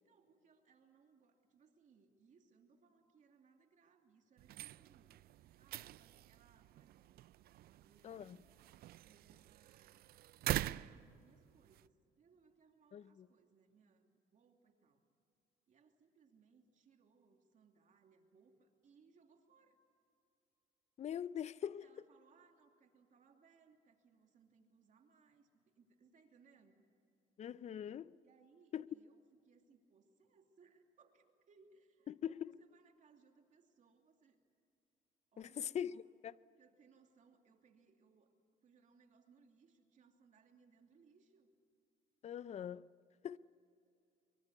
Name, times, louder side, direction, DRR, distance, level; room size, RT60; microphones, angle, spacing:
voice 1, 0.0-7.1 7.6-8.5 9.0-10.0 10.4-15.0 15.7-19.8 21.6-26.8 28.2-34.4 35.3-36.1 36.6-38.3 38.6-41.5 43.2-43.4, right 5 dB, 45° right, 2.8 m, -69 dB
sound 1, 4.4-11.9, right 14 dB, 65° right, 0.5 m, -45 dB
voice 2, 8.0-8.4 12.9-13.3 21.0-21.9 27.4-28.2 28.7-28.9 32.1-32.5 35.4-36.3 42.2-42.9 43.2-43.4, left 9 dB, 40° left, 0.6 m, -42 dB
24.5 x 23.5 x 8.2 m
cardioid pair, 110°, 17 cm